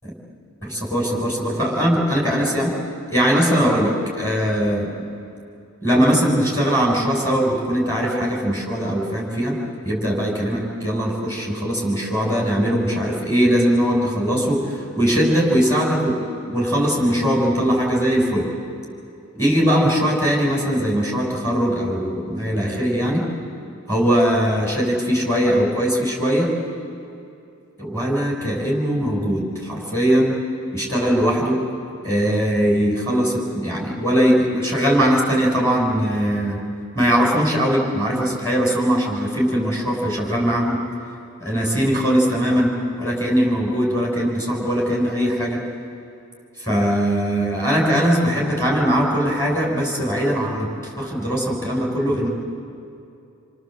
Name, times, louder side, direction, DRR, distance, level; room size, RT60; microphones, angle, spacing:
voice 1, 0.6-2.7 3.1-4.9 5.8-9.6 9.8-18.5 19.3-23.3 23.9-26.5 27.8-30.4 30.7-31.6 32.0-36.6 36.9-40.8 41.4-45.6 46.6-52.3, equal, 10° left, -3 dB, 6.3 m, -20 dB
27.5 x 25.5 x 7.8 m, 2.6 s
head